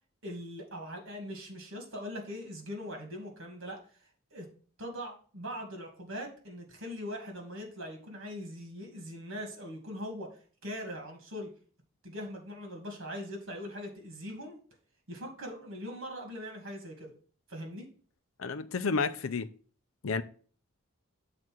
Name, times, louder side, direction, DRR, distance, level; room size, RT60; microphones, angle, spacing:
voice 1, 0.2-3.8 4.3-4.5 4.8-10.3 10.6-11.5 12.0-14.6 15.1-17.1 17.5-17.8, equal, 60° right, 2.4 m, -41 dB
voice 2, 18.4-19.5 20.0-20.2, left 4 dB, 75° left, 0.6 m, -30 dB
7.6 x 4.1 x 6.1 m
head